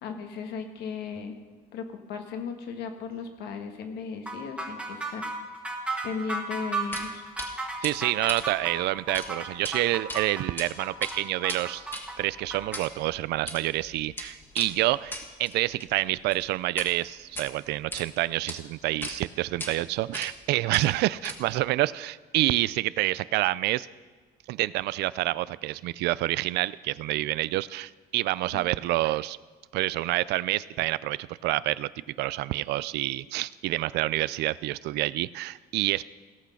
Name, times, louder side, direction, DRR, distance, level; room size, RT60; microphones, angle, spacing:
voice 1, 0.0-1.4 1.7-5.3 6.0-7.2 28.5-28.6, left 5 dB, 75° left, 5 dB, 1.5 m, -36 dB
sound 1, 4.3-12.8, right 3 dB, 5° right, 1.7 m, -34 dB
sound 2, 6.9-7.1 7.4-7.5 7.8-9.3 9.5-9.7 10.1-10.7 10.9-16.9 17.2-18.0 18.5-18.6 19.0-19.2 19.6-19.7 20.1-20.4 20.7-21.6, left 1 dB, 15° left, 1.6 m, -39 dB
voice 2, 7.8-11.8 12.2-23.9 24.5-29.4 29.7-31.2 31.4-31.9 32.2-36.0, right 17 dB, 80° right, 19 dB, 0.4 m, -28 dB
17.0 x 6.2 x 5.7 m, 1.3 s
cardioid pair, 110°, 17 cm